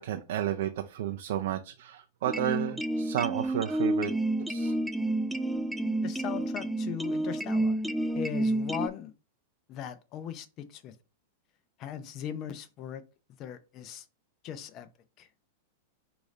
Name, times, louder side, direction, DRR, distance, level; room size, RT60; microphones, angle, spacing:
voice 1, 0.0-4.1 4.5-4.7, right 11 dB, 70° right, 0.4 m, -32 dB
sound 1, 2.3-8.9, right 1 dB, ahead, 0.3 m, -30 dB
voice 2, 6.0-7.8 8.1-9.1 9.7-11.0 11.8-13.0 13.4-14.0 14.4-14.9 15.2-15.3, left 9 dB, 40° left, 0.6 m, -39 dB
4.8 x 2.6 x 4.1 m
hypercardioid pair, 120°, 0 cm